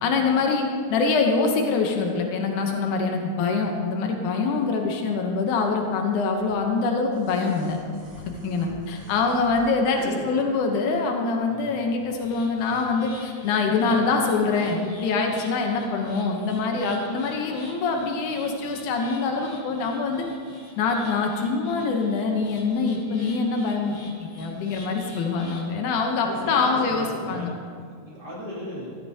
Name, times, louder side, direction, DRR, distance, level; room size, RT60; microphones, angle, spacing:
voice 1, 0.0-7.8 8.4-10.0 10.3-20.3 20.8-23.9 24.2-27.6, left 4 dB, 85° left, 2 dB, 2.4 m, -24 dB
sound 1, 6.3-10.0 11.3-11.4, left 1 dB, 65° right, 3.2 m, -46 dB
voice 2, 9.0-9.4 9.9-10.3 11.4-11.7 12.5-12.8 13.9-14.1 26.2-27.6 27.9-29.0, equal, 35° right, -7 dB, 3.1 m, -37 dB
sound 2, 12.1-25.7, left 1 dB, 30° left, 1.2 m, -45 dB
13.5 x 12.5 x 2.8 m, 2.1 s
omnidirectional pair, 3.4 m